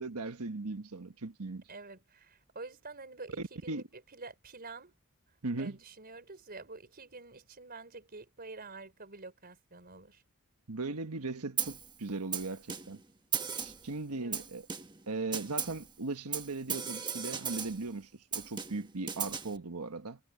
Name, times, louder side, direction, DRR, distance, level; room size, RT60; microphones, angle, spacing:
voice 1, 0.0-1.6 3.4-3.8 5.4-5.8 10.7-13.0 13.5-14.7 15.1-20.2, right 3 dB, 85° right, 1.3 m, -38 dB
voice 2, 1.7-3.8 4.1-4.9 5.6-10.2 14.1-14.5, right 3 dB, 45° right, 4.9 m, -48 dB
Snare drum, 11.6-11.9 12.3-13.0 13.3-13.9 14.3-15.0 15.3-15.9 16.3-17.9 18.3-19.6, right 7 dB, 20° right, 1.3 m, -36 dB
head